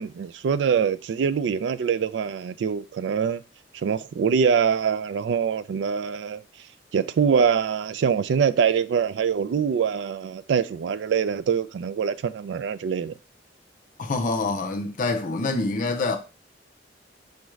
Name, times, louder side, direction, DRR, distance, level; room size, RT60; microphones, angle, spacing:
voice 1, 0.0-3.4 3.7-6.4 6.9-13.1, right 7 dB, 75° right, 0.3 m, -24 dB
voice 2, 14.0-16.2, left 3 dB, 45° left, 0.5 m, -26 dB
5.1 x 2.4 x 3.1 m
head